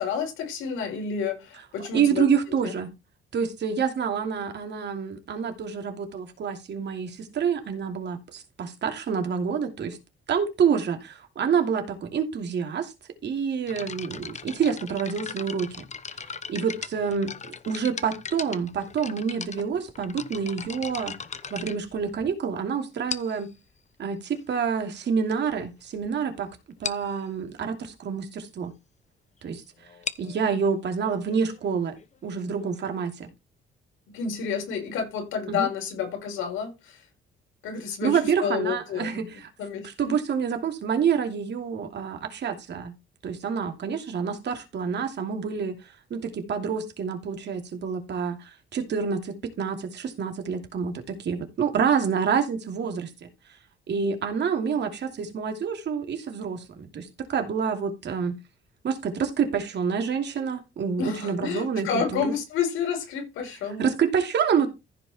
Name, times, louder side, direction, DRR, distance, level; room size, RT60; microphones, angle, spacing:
voice 1, 0.0-2.3 2.6-2.7 34.1-37.0 37.6-39.3 39.6-40.2 61.0-63.9, left 6 dB, 90° left, 4.9 m, -30 dB
voice 2, 1.9-2.9 3.3-10.0 10.3-12.9 13.2-15.8 16.5-21.1 21.5-23.5 24.0-26.5 26.8-28.7 29.4-29.6 30.2-32.0 32.2-33.3 35.5-35.7 38.0-39.5 39.8-42.9 43.2-53.3 53.9-58.4 58.8-62.3 63.8-64.7, right 6 dB, 60° right, 2.9 m, -27 dB
sound 1, 13.7-22.5 23.1-23.5 24.3-24.4 25.1-25.2 25.4-25.6 26.0-26.1 26.3-26.4 26.8-27.1 29.8-33.3, left 6 dB, 35° left, 1.0 m, -38 dB
15.0 x 5.2 x 4.3 m
cardioid pair, 90°, 20 cm